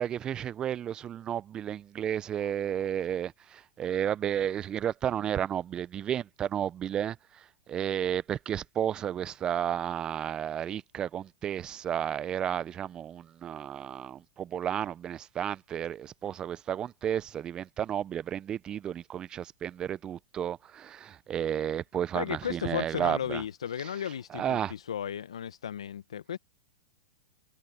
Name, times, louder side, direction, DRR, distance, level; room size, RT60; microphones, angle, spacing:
voice 1, 0.0-23.4 23.8-23.9 24.3-24.7, right 9 dB, 25° right, 0.9 m, -32 dB
voice 2, 22.1-26.4, left 9 dB, 75° left, 1.8 m, -35 dB
hypercardioid pair, 105°, 3 cm